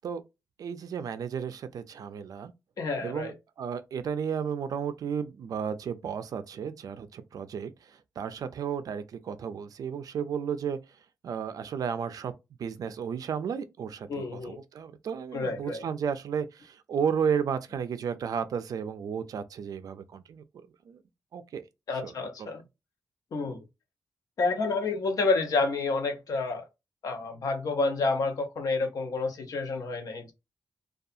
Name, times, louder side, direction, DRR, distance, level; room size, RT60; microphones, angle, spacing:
voice 1, 0.6-2.5 3.0-10.8 11.2-12.3 12.6-21.0 21.3-21.6 22.0-22.5, right 7 dB, 65° right, 0.3 m, -33 dB
voice 2, 2.8-3.3 14.1-14.6 15.3-15.8 21.9-22.6 23.3-23.6 24.4-26.6 27.0-30.3, left 3 dB, 65° left, 0.6 m, -29 dB
2.6 x 2.3 x 2.4 m
wide cardioid pair, 130°, 7 cm